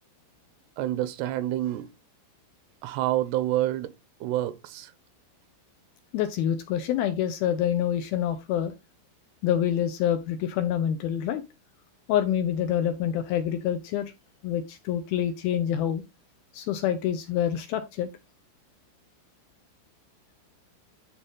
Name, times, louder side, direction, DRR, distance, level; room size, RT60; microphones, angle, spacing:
voice 1, 0.8-1.9 2.8-3.9 4.2-4.9, right 14 dB, 80° right, 2.6 m, -28 dB
voice 2, 6.1-8.7 9.4-11.4 12.1-14.1 14.4-16.0 16.5-18.1, left 10 dB, 80° left, 2.3 m, -26 dB
11.0 x 3.8 x 3.8 m
omnidirectional pair, 5.0 m